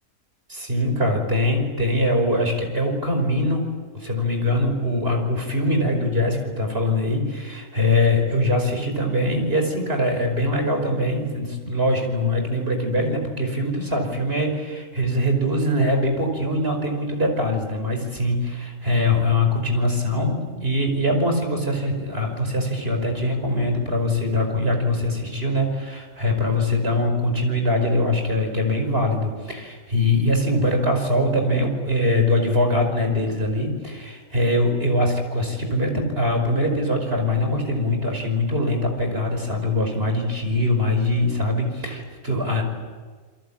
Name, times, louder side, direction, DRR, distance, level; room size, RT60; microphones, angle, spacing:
voice 1, 0.5-42.6, left 1 dB, 50° right, 4 dB, 5.5 m, -22 dB
29.5 x 23.0 x 8.9 m, 1.5 s
omnidirectional pair, 1.3 m